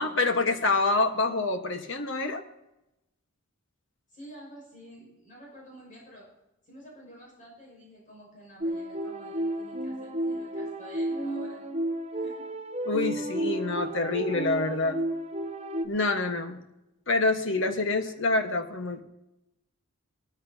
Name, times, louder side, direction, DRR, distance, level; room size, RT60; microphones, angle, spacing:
voice 1, 0.0-2.4 12.8-15.0 15.8-16.6 17.1-19.0, left 3 dB, 65° left, 6 dB, 1.3 m, -26 dB
voice 2, 4.1-11.7 12.1-12.6 13.8-13.9 17.8-18.6, equal, 40° left, -3 dB, 6.1 m, -50 dB
sound 1, 8.6-15.9, right 1 dB, 30° right, 0.9 m, -32 dB
19.0 x 13.5 x 2.8 m, 0.91 s
head